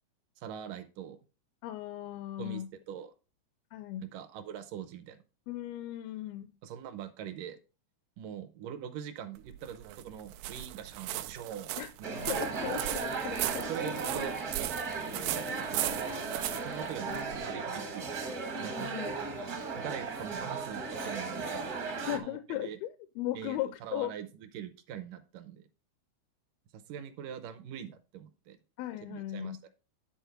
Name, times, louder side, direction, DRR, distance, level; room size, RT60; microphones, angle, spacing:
voice 1, 0.4-1.2 2.4-2.6 2.9-3.1 4.1-5.2 6.6-7.6 8.2-12.7 13.7-14.3 15.0-16.0 16.5-18.1 18.6-18.9 19.7-21.7 22.2-22.8 23.3-25.6 26.7-28.6 29.1-29.6, right 9 dB, 75° right, 2.1 m, -43 dB
voice 2, 1.6-2.7 3.7-4.1 5.5-6.5 11.8-11.9 12.3-13.7 17.1-17.3 18.8-19.1 22.1-24.1 28.8-29.6, left 13 dB, 85° left, 2.5 m, -37 dB
sound 1, 9.4-17.5, right 14 dB, 90° right, 2.6 m, -38 dB
sound 2, 12.0-22.2, right 4 dB, 60° right, 1.0 m, -36 dB
10.5 x 4.3 x 5.7 m
omnidirectional pair, 4.4 m